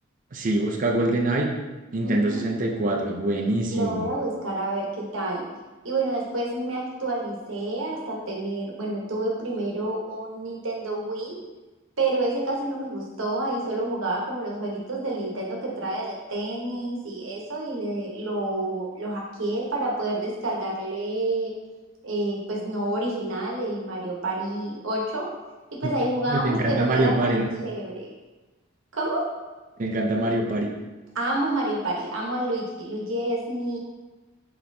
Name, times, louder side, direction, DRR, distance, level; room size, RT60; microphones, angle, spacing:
voice 1, 0.3-1.5 1.9-4.1 25.8-25.9 26.3-27.5 29.8-30.7, right 2 dB, 40° right, 1 dB, 0.5 m, -24 dB
voice 2, 2.0-2.4 3.7-5.4 5.8-11.3 12.0-21.5 22.0-25.3 25.7-27.3 27.6-28.1 28.9-29.3 31.1-33.8, right 2 dB, 70° right, -2 dB, 1.0 m, -28 dB
5.2 x 3.0 x 2.6 m, 1.2 s
head